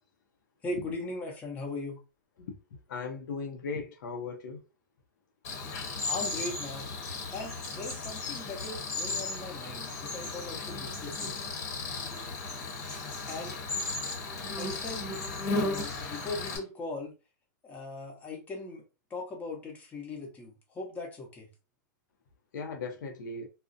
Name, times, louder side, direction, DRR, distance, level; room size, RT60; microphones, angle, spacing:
voice 1, 0.6-2.0 6.0-6.9 7.3-11.5 13.3-13.6 14.5-15.1 15.5-17.1 17.6-18.8 19.1-21.5, left 2 dB, 15° left, 0.8 m, -39 dB
voice 2, 2.9-4.6 22.5-23.5, left 4 dB, 70° left, 0.6 m, -37 dB
Cricket, 5.4-16.6, left 3 dB, 50° left, 0.9 m, -35 dB
2.4 x 2.0 x 2.5 m
hypercardioid pair, 140°, 10 cm